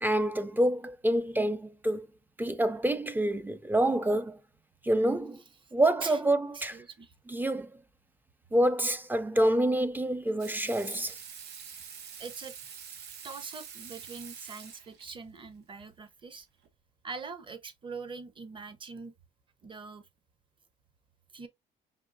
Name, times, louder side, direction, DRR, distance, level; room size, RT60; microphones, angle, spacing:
voice 1, 0.0-2.1 2.4-4.4 4.8-5.4 5.7-6.8 7.3-7.8 8.5-11.2, right 1 dB, 10° right, 0.4 m, -27 dB
voice 2, 6.7-7.1 12.2-12.5 13.2-16.5 17.0-19.1 19.6-20.0 21.3-21.5, right 4 dB, 30° right, 0.9 m, -42 dB
Water tap faucet / Sink (filling or washing), 10.4-15.1 16.6-16.7, right 7 dB, 80° right, 1.1 m, -46 dB
5.3 x 2.8 x 2.6 m
cardioid pair, 110°, 17 cm